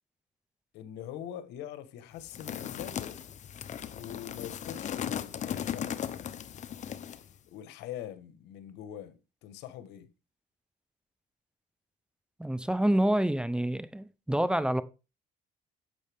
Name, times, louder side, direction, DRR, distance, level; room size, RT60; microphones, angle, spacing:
voice 1, 0.7-3.2 3.9-6.5 6.8-10.1, left 11 dB, 90° left, 1.3 m, -44 dB
sound 1, 2.2-7.3, left 9 dB, 45° left, 0.8 m, -37 dB
voice 2, 12.4-14.8, right 1 dB, 5° right, 0.6 m, -27 dB
11.0 x 7.6 x 3.5 m
cardioid pair, 110°, 17 cm